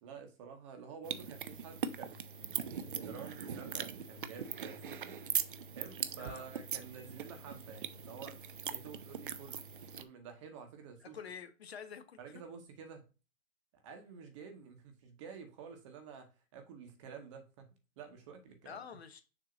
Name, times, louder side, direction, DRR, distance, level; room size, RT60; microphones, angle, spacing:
voice 1, 0.0-5.2 5.7-8.3 8.7-9.7 10.0-11.2 12.2-13.0 13.7-17.7 18.0-18.8, right 6 dB, 20° right, 1.0 m, -50 dB
sound 1, 1.0-10.0, right 7 dB, 40° right, 0.4 m, -40 dB
voice 2, 6.1-6.5 11.0-12.4 18.6-19.2, left 7 dB, 50° left, 0.8 m, -48 dB
6.7 x 2.8 x 5.0 m
hypercardioid pair, 145°, 41 cm